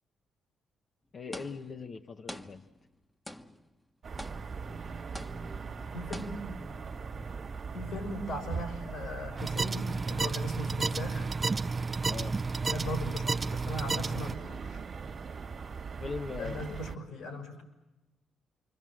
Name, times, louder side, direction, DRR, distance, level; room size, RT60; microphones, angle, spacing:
voice 1, 1.1-2.7 12.1-12.4 16.0-17.0, left 4 dB, 50° left, 5 dB, 1.1 m, -40 dB
sound 1, 1.3-1.9 2.3-3.0 3.3-3.8 4.2-4.8 5.1-5.7 6.1-6.7, left 1 dB, 10° left, 1.4 m, -45 dB
sound 2, 4.0-17.0, right 5 dB, 55° right, 1.9 m, -40 dB
voice 2, 5.9-6.4 7.7-11.3 12.6-14.8 16.4-17.6, left 1 dB, 80° left, 5 dB, 6.0 m, -39 dB
sound 3, 9.4-14.3, right 4 dB, 35° right, 0.9 m, -32 dB
28.5 x 24.5 x 7.7 m, 1.1 s
supercardioid pair, 65°, 0 cm